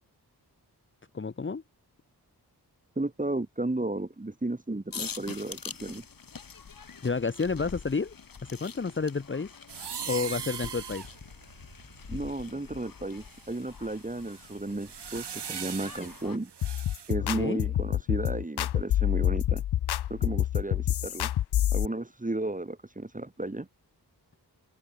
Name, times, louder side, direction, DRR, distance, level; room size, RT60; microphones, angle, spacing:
voice 1, 1.1-1.6 7.0-8.1 8.4-9.5 10.1-11.1 17.2-17.6, left 4 dB, 30° left, 0.9 m, -30 dB
voice 2, 3.0-6.0 12.1-16.5 17.1-19.6 20.1-21.3 21.7-23.7, right 2 dB, 20° right, 2.2 m, -34 dB
sound 1, 4.9-16.4, left 6 dB, 60° left, 1.6 m, -45 dB
sound 2, 9.7-12.6 13.2-17.1, right 8 dB, 85° right, 1.4 m, -41 dB
sound 3, 16.6-21.9, left 12 dB, 75° left, 0.5 m, -27 dB
wide cardioid pair, 90°, 40 cm